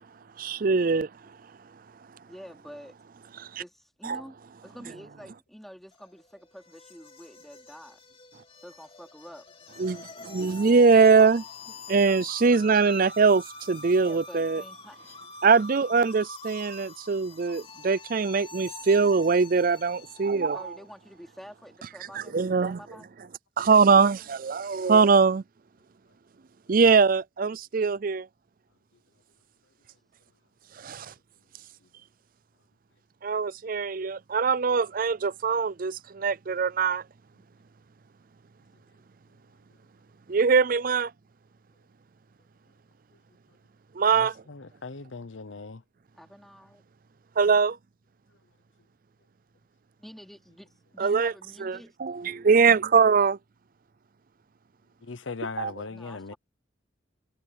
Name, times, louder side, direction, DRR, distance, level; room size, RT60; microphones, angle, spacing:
voice 1, 0.4-1.1 3.4-3.5 4.1-4.2 9.8-11.4 11.9-14.6 15.4-20.6 22.3-22.8 23.6-25.4 26.7-28.3 30.8-31.1 33.2-37.0 40.3-41.1 44.0-44.3 47.4-47.8 51.0-51.3 51.6-53.4 55.6-55.7, right 5 dB, 50° right, 0.5 m, -22 dB
voice 2, 2.3-3.0 3.6-8.0 8.6-9.5 13.9-15.1 17.3-17.4 20.5-23.1 46.1-46.8 50.0-52.0 55.9-56.4, equal, ahead, 3.0 m, -48 dB
sound 1, 5.9-20.5, left 3 dB, 30° left, 3.0 m, -45 dB
voice 3, 44.1-45.8 55.0-56.3, left 4 dB, 85° left, 0.9 m, -39 dB
head